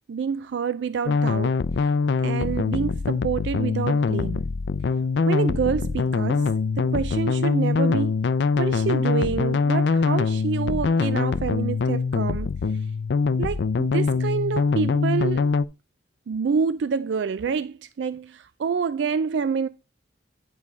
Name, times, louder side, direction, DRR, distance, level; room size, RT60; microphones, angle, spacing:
voice 1, 0.1-1.6 1.8-1.9 2.2-4.5 5.3-6.5 6.8-8.1 8.6-12.5 13.4-15.5 16.3-19.7, right 6 dB, 75° right, 0.4 m, -27 dB
sound 1, 1.1-15.6, left 4 dB, 70° left, 0.4 m, -23 dB
9.7 x 4.8 x 4.1 m
head